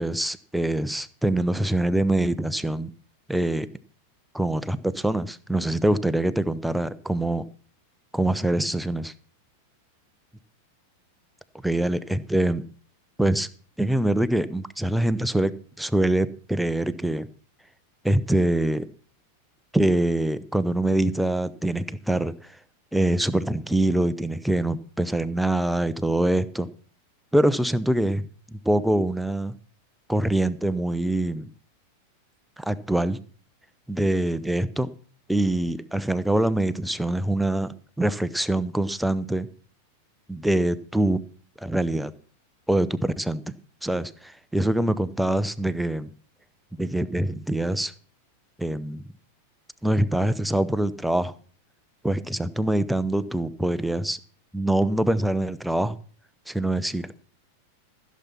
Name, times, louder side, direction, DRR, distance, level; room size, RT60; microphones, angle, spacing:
voice 1, 0.0-2.9 3.3-3.7 4.3-7.4 8.1-9.1 11.6-12.6 13.2-13.5 13.8-17.3 18.0-18.9 19.7-22.3 22.9-26.7 27.3-28.2 28.5-29.5 30.1-31.5 32.6-33.2 33.9-34.9 35.3-39.5 40.3-41.2 41.6-42.1 42.7-43.5 43.8-46.1 46.8-47.9 48.6-49.0 49.8-51.3 52.0-54.2 54.5-56.0 56.5-57.2, right 1 dB, ahead, 14 dB, 0.8 m, -24 dB
15.0 x 7.3 x 6.0 m, 0.43 s
figure-of-eight pair, 90°, 0 cm